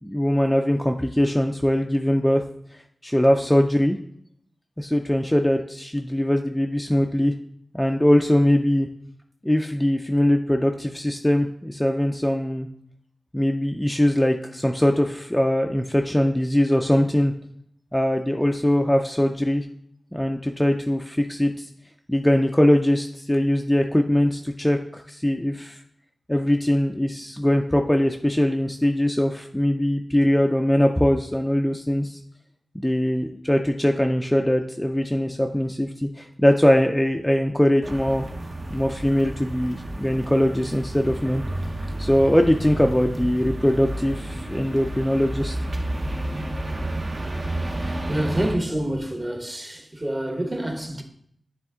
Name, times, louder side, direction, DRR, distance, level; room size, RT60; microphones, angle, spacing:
voice 1, 0.0-2.4 2.7-4.0 4.8-7.3 7.7-8.9 9.4-12.7 13.3-17.3 17.9-19.7 20.1-21.7 22.1-25.8 26.3-32.2 32.7-38.3 38.7-41.4 42.0-45.6, left 1 dB, 10° left, 0.4 m, -21 dB
sound 1, 37.8-48.6, right 1 dB, 45° right, 0.8 m, -31 dB
voice 2, 48.1-51.0, right 1 dB, 25° right, 1.0 m, -27 dB
9.8 x 3.5 x 3.6 m
wide cardioid pair, 105°, 0 cm